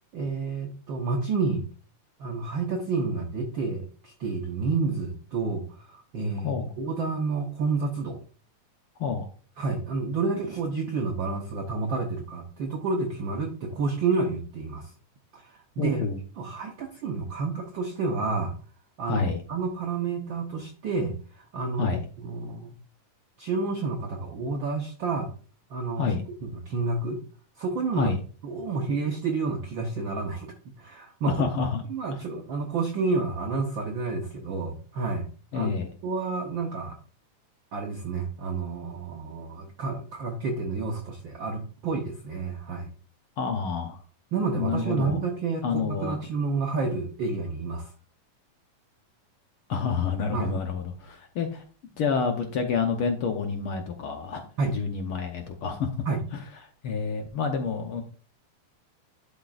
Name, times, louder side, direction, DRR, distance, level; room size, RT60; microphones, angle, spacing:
voice 1, 0.1-1.6 2.2-8.2 9.6-14.9 15.3-16.0 16.4-18.5 19.0-19.2 19.5-22.7 23.4-25.3 25.7-26.1 26.4-27.2 27.6-28.2 28.4-31.5 31.9-35.3 35.5-35.7 36.0-36.9 37.7-42.9 44.3-47.9 50.3-50.6 54.6-54.7 56.1-56.2, right 4 dB, 85° right, 2 dB, 1.0 m, -30 dB
voice 2, 6.4-6.7 9.0-9.3 15.8-16.2 19.0-19.4 21.8-22.0 26.0-26.2 27.9-28.2 31.3-31.8 32.1-32.2 35.5-35.9 43.4-44.0 44.6-45.2 45.6-46.2 49.7-51.6 52.0-54.4 54.7-55.9 56.3-56.4 56.8-58.0, left 5 dB, 75° left, 4 dB, 1.2 m, -28 dB
11.5 x 6.4 x 2.4 m, 0.39 s
omnidirectional pair, 3.6 m